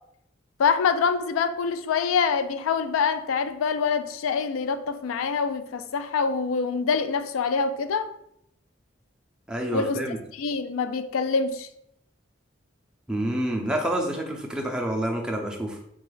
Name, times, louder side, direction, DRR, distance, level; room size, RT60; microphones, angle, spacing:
voice 1, 0.6-8.1 9.7-11.7, left 5 dB, 85° left, 0.3 m, -25 dB
voice 2, 9.5-10.2 13.1-15.8, right 1 dB, 5° right, 0.4 m, -28 dB
3.9 x 2.2 x 3.2 m
head